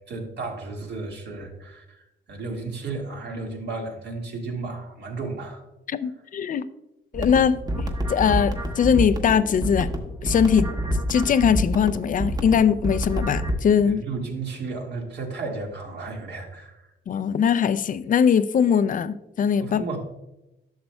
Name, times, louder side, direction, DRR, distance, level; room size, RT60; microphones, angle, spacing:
voice 1, 0.1-5.6 13.9-16.9 19.6-20.0, right 3 dB, 55° right, 1.8 m, -33 dB
voice 2, 5.9-6.6 7.1-9.9 10.2-10.7 11.1-14.0 17.1-19.8, left 7 dB, 45° left, 0.4 m, -21 dB
sound 1, 7.1-13.5, equal, 20° right, 1.1 m, -28 dB
11.0 x 6.7 x 2.2 m
cardioid pair, 90°, 20 cm